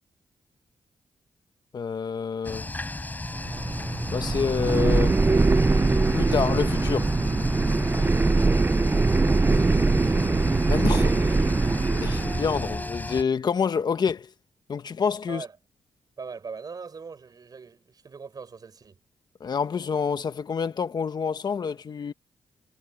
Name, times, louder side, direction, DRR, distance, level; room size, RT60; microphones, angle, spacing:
voice 1, 1.7-2.7 4.1-5.2 6.1-7.1 10.7-11.4 12.0-14.3 14.7-15.4 19.4-22.1, left 6 dB, 55° left, 1.2 m, -27 dB
sound 1, 2.4-13.2, left 2 dB, 20° left, 4.8 m, -33 dB
sound 2, 3.2-12.8, right 3 dB, 25° right, 0.6 m, -22 dB
voice 2, 9.2-10.4 15.3-15.5 16.2-19.0, right 5 dB, 45° right, 7.6 m, -41 dB
cardioid pair, 75°, 9 cm